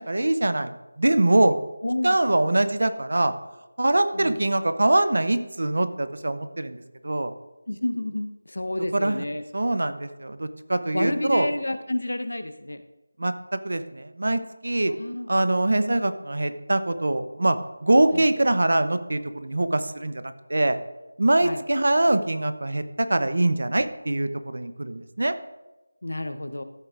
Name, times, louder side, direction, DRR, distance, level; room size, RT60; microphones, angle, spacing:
voice 1, 0.0-1.6 2.0-3.3 3.8-7.3 8.9-9.2 9.5-11.5 13.2-14.9 15.3-20.8 21.2-25.3, right 2 dB, 50° right, 11 dB, 0.7 m, -23 dB
voice 2, 1.8-2.2 4.1-4.4 7.7-9.4 10.9-12.8 15.0-15.3 15.9-16.0 18.1-18.3 21.4-21.6 26.0-26.6, left 1 dB, 75° left, 9 dB, 0.8 m, -29 dB
14.0 x 7.8 x 2.5 m, 1.1 s
figure-of-eight pair, 180°, 0 cm